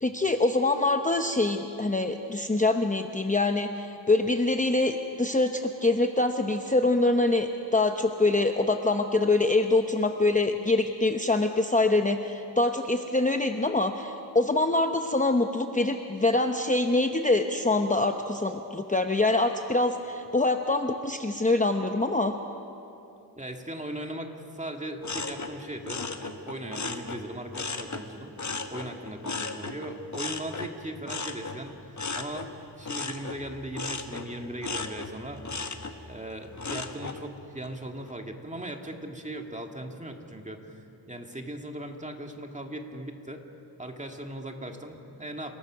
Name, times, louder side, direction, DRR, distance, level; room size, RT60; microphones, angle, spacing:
voice 1, 0.0-22.3, left 2 dB, 20° left, 5 dB, 0.8 m, -25 dB
voice 2, 23.4-28.3 28.7-32.5 32.8-35.4 35.9-43.4 43.8-45.5, right 1 dB, 15° right, 3 dB, 1.9 m, -38 dB
sound 1, 25.0-28.1 28.4-37.2 37.6-38.1, left 3 dB, 45° left, 1.3 m, -36 dB
28.5 x 19.0 x 6.2 m, 2.8 s
wide cardioid pair, 95°, 41 cm